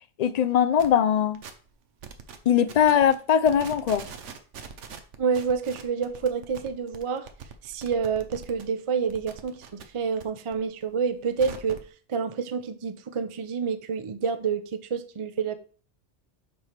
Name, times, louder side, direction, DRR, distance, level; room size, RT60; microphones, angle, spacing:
voice 1, 0.2-1.4 2.5-4.0, left 8 dB, 55° left, 0.4 m, -21 dB
sound 1, 0.8-0.9 1.3-1.7 2.0-2.4 2.7-3.2 3.4-8.6 9.0-10.2 10.5-11.9, right 6 dB, 85° right, 1.2 m, -42 dB
voice 2, 5.2-7.3 7.6-11.8 12.1-15.5, right 6 dB, 40° right, 0.5 m, -28 dB
6.9 x 3.3 x 5.8 m
omnidirectional pair, 1.2 m